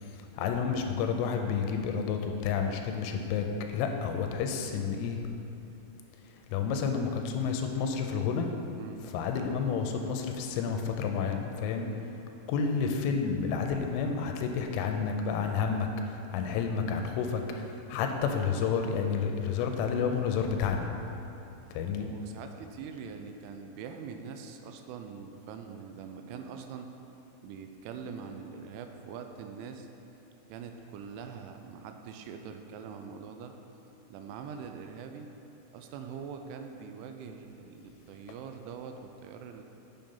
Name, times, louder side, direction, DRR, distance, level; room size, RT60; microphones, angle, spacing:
voice 1, 0.1-5.2 6.5-8.5 9.1-11.9 12.5-20.9 21.7-22.1, left 6 dB, 85° left, 4 dB, 3.0 m, -30 dB
voice 2, 22.0-26.9 27.4-29.9 30.5-33.5 34.1-35.3 35.7-39.6, right 6 dB, 85° right, 6 dB, 2.8 m, -43 dB
7.7 x 7.0 x 5.4 m, 2.9 s
omnidirectional pair, 5.7 m